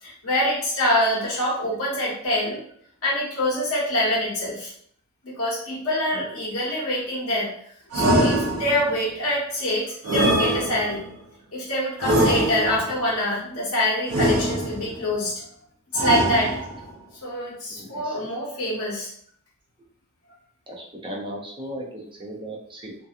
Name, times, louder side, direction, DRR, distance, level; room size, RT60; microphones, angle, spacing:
voice 1, 0.0-2.6 3.0-4.7 5.2-7.5 7.9-11.0 11.5-15.4 15.9-16.6 17.2-19.1, left 1 dB, 75° left, -6 dB, 0.9 m, -25 dB
sound 1, 7.9-9.0 10.0-11.1 12.0-13.0 14.1-15.0 15.9-16.9, right 1 dB, 75° right, 0.6 m, -23 dB
voice 2, 17.7-18.3 20.7-23.0, equal, 25° right, -2 dB, 0.6 m, -36 dB
2.7 x 2.2 x 2.4 m, 0.62 s
head